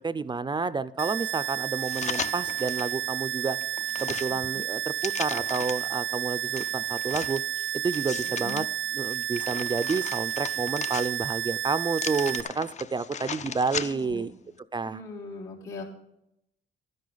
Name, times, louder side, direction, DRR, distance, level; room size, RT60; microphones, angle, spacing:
voice 1, 0.0-3.6 4.0-7.4 7.8-14.4 14.7-15.0, right 4 dB, 25° right, 15 dB, 0.4 m, -30 dB
sound 1, 1.0-12.4, right 13 dB, 80° right, 0.5 m, -31 dB
sound 2, 1.8-2.9 3.4-5.9 6.6-8.6 9.1-11.4 11.9-14.2 14.6-14.7, left 7 dB, 35° left, 0.5 m, -37 dB
voice 2, 13.8-14.3 14.8-15.8, left 3 dB, 85° left, -5 dB, 3.9 m, -40 dB
12.5 x 10.5 x 4.0 m, 0.79 s
cardioid pair, 90°, 20 cm